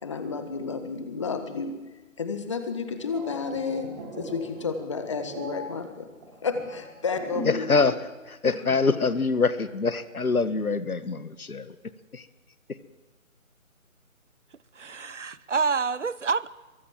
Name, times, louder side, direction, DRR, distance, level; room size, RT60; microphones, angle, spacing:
voice 1, 0.0-1.7 2.2-3.9 4.2-6.1 6.4-7.9 8.4-8.5, left 5 dB, 20° left, 1.7 m, -31 dB
sound 1, 2.9-7.8 8.0-8.3, equal, 20° right, 5.0 m, -39 dB
voice 2, 7.5-8.0 8.3-11.7 12.1-12.2, left 4 dB, 85° left, 1.8 m, -25 dB
voice 3, 14.7-16.5, right 5 dB, 55° right, 0.9 m, -27 dB
23.5 x 22.0 x 7.4 m
figure-of-eight pair, 170°, 42 cm